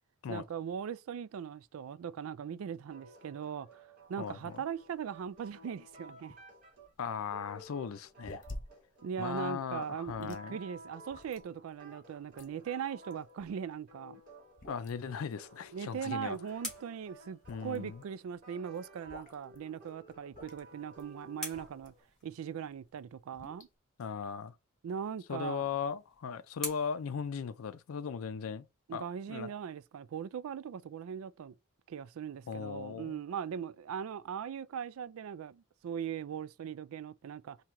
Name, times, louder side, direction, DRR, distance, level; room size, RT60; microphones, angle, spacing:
voice 1, 0.3-6.4 9.0-14.2 15.7-21.9 22.2-23.7 24.8-25.6 28.9-31.5 31.9-37.6, right 7 dB, 70° right, 0.3 m, -40 dB
sound 1, 2.9-22.0, right 1 dB, 40° right, 2.5 m, -55 dB
sound 2, 4.0-22.1 22.6-23.7, left 1 dB, 40° left, 1.0 m, -52 dB
voice 2, 4.2-4.6 7.0-8.4 9.2-10.6 14.7-16.4 17.5-18.0 24.0-24.5 25.3-28.7 28.9-29.5 32.5-33.2, left 6 dB, 75° left, 0.4 m, -38 dB
sound 3, 15.7-18.2 20.3-22.7 25.0-28.1, left 1 dB, 5° left, 2.3 m, -48 dB
4.4 x 2.9 x 3.6 m
head